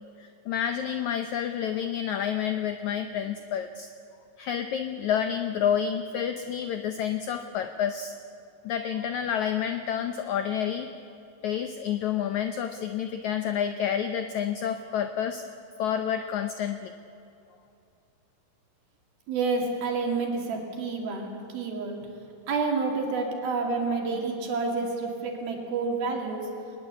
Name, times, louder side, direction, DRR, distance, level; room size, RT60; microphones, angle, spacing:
voice 1, 0.2-3.9 4.4-8.2 8.6-10.9 11.4-15.5 15.8-16.9, left 8 dB, 90° left, 8 dB, 1.6 m, -29 dB
voice 2, 19.3-22.0 22.5-26.5, right 4 dB, 75° right, 1 dB, 4.4 m, -29 dB
21.0 x 20.5 x 8.4 m, 2.7 s
omnidirectional pair, 4.4 m